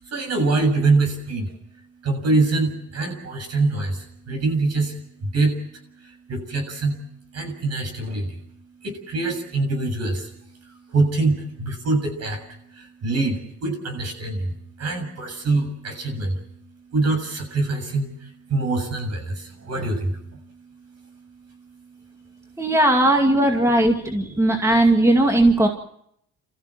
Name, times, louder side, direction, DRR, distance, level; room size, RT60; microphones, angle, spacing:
voice 1, 0.0-1.5 2.0-5.6 6.0-7.0 7.3-8.5 8.8-22.6, right 3 dB, 55° right, 4 dB, 7.3 m, -25 dB
voice 2, 22.6-25.7, right 1 dB, 10° right, 3 dB, 2.3 m, -18 dB
29.5 x 15.0 x 7.5 m, 0.73 s
cardioid pair, 95°, 31 cm